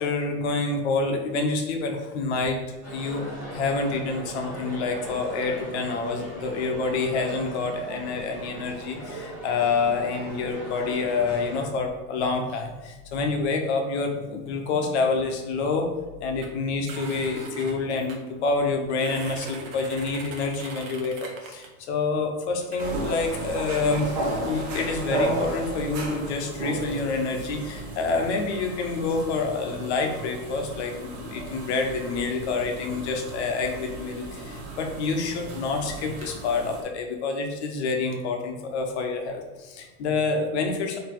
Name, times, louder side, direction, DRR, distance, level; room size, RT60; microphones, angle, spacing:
voice 1, 0.0-2.6 2.9-3.3 3.5-15.9 16.2-41.0, left 4 dB, 50° left, 3 dB, 0.8 m, -27 dB
sound 1, 2.8-11.6, right 1 dB, ahead, 1.4 m, -38 dB
sound 2, 16.4-16.5 16.9-18.2 18.9-21.7 22.6-22.9, right 3 dB, 65° right, 1.0 m, -41 dB
sound 3, 22.8-36.8, right 2 dB, 45° right, 1.1 m, -34 dB
4.0 x 2.9 x 4.4 m, 1.2 s
supercardioid pair, 175°, 44 cm